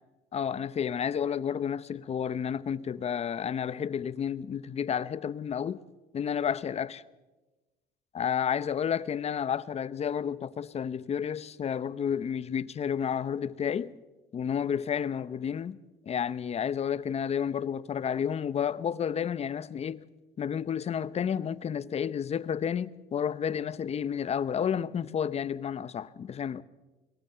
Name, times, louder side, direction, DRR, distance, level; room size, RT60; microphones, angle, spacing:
voice 1, 0.3-5.8 6.1-7.0 8.1-13.9 14.3-15.8 16.1-20.0 20.4-26.6, left 8 dB, 40° left, 0.8 m, -31 dB
23.0 x 18.0 x 6.8 m
cardioid pair, 110°, 17 cm